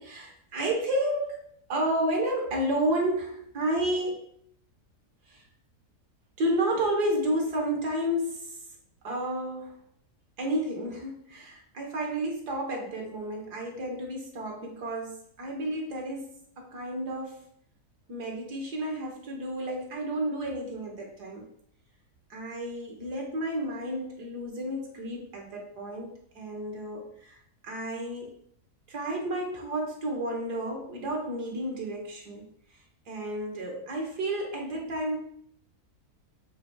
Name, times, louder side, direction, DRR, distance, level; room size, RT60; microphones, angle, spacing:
voice 1, 0.0-1.4 1.7-4.3 5.3-5.4 6.4-8.6 9.0-9.8 10.4-17.5 18.1-21.5 22.3-28.3 28.9-32.4 33.1-35.2, right 1 dB, 80° right, 0 dB, 2.2 m, -31 dB
7.3 x 3.2 x 4.7 m, 0.65 s
omnidirectional pair, 1.7 m